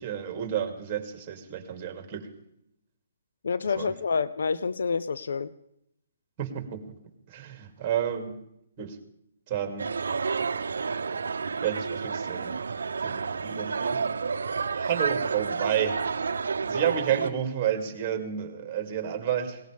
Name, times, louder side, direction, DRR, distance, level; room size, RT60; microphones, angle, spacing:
voice 1, 0.0-2.3 3.7-3.9 6.4-6.9 7.3-8.4 8.8-9.0 9.5-9.9 11.6-12.6 13.0-14.0 14.7-16.0 16.7-19.6, right 9 dB, 25° right, 5 dB, 2.6 m, -30 dB
voice 2, 3.4-5.5, left 5 dB, 75° left, 15 dB, 0.6 m, -28 dB
sound 1, 9.8-17.3, right 5 dB, 85° right, 0.7 m, -30 dB
20.5 x 18.5 x 3.5 m, 0.78 s
hypercardioid pair, 155°, 0 cm